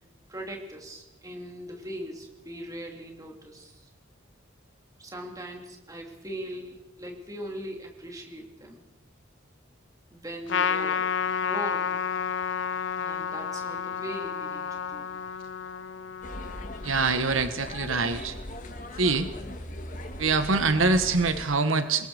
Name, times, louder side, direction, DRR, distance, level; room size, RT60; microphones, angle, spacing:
voice 1, 0.3-3.9 5.0-8.8 10.1-12.0 13.0-15.1, right 1 dB, 15° right, 1 dB, 2.9 m, -40 dB
Trumpet, 10.5-17.2, left 6 dB, 60° left, 0.7 m, -31 dB
sound 1, 16.2-21.5, left 1 dB, 40° left, 2.0 m, -39 dB
voice 2, 16.8-18.4 19.0-19.3 20.2-22.1, right 3 dB, 80° right, 9 dB, 1.4 m, -24 dB
25.5 x 21.5 x 5.0 m, 0.97 s
head